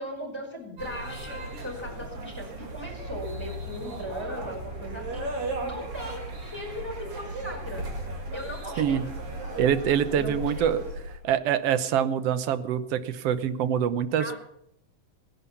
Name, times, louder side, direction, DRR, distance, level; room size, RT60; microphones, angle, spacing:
voice 1, 0.0-7.9 8.3-9.0 10.1-10.8 14.2-14.4, left 1 dB, 10° left, 2 dB, 4.7 m, -38 dB
sound 1, 0.8-11.2, right 2 dB, 50° right, 3.2 m, -36 dB
voice 2, 9.6-10.8 11.2-14.4, right 9 dB, 65° right, 13 dB, 1.7 m, -25 dB
18.0 x 10.5 x 7.0 m, 0.77 s
omnidirectional pair, 3.5 m